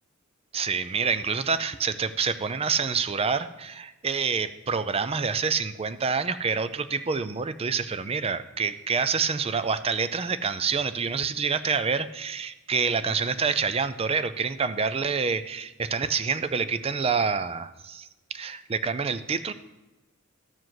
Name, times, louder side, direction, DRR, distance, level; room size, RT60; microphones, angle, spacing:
voice 1, 0.5-19.5, right 5 dB, 30° right, 13 dB, 0.5 m, -27 dB
12.5 x 4.9 x 7.7 m, 1.1 s
head